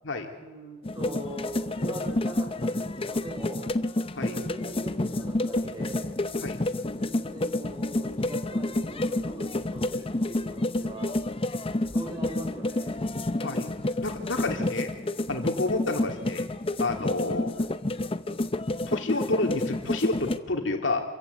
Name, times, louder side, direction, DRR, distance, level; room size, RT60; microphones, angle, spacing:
voice 1, 0.0-3.6 4.2-6.1 7.0-11.2 11.9-13.0 15.3-15.4, right 1 dB, 25° right, 1 dB, 6.0 m, -41 dB
sound 1, 0.8-20.4, left 2 dB, 30° left, 0.7 m, -29 dB
voice 2, 14.0-14.9 15.3-16.5 16.8-17.5 18.9-21.0, left 2 dB, 80° left, 3 dB, 2.7 m, -29 dB
27.0 x 15.0 x 8.3 m, 1.2 s
head